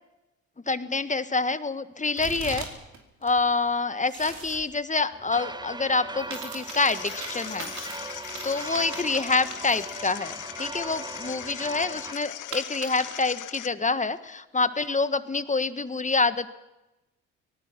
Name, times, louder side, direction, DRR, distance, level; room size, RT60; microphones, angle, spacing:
voice 1, 0.7-2.7 3.2-7.7 8.4-16.5, left 3 dB, 20° left, 12 dB, 1.4 m, -27 dB
sound 1, 2.2-3.0 3.2-4.6 6.2-10.2 10.6-10.7 12.5-13.3, right 4 dB, 50° right, 4.8 m, -40 dB
sound 2, 5.1-12.1, right 2 dB, 10° right, 1.0 m, -39 dB
sound 3, 6.7-13.7, left 13 dB, 55° left, 0.9 m, -40 dB
23.5 x 18.5 x 6.1 m, 0.97 s
hypercardioid pair, 55°, 36 cm